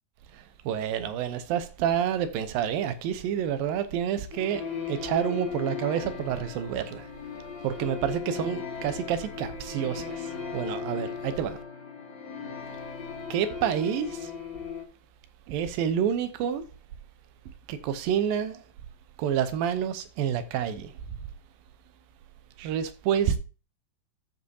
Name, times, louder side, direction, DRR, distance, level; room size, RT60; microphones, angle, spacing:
voice 1, 0.3-7.1 7.6-11.6 13.3-14.3 15.5-16.6 17.5-18.6 19.2-20.9 22.6-23.4, right 9 dB, 80° right, 2.5 m, -29 dB
sound 1, 4.3-14.8, left 5 dB, 35° left, 2.7 m, -37 dB
13.5 x 5.4 x 2.7 m
omnidirectional pair, 4.1 m